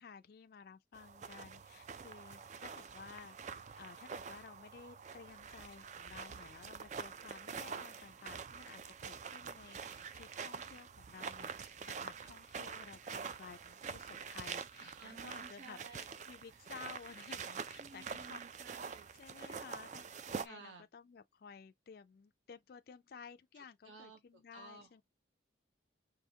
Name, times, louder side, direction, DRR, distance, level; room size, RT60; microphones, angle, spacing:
voice 1, 0.0-3.4 3.8-18.4 19.1-25.0, left 6 dB, 50° left, 0.3 m, -55 dB
sound 1, 0.9-20.5, right 6 dB, 40° right, 0.3 m, -46 dB
voice 2, 14.8-16.1 17.8-19.1 20.4-20.8 23.8-24.2 24.5-24.9, right 3 dB, 75° right, 1.0 m, -54 dB
4.9 x 2.7 x 2.7 m
head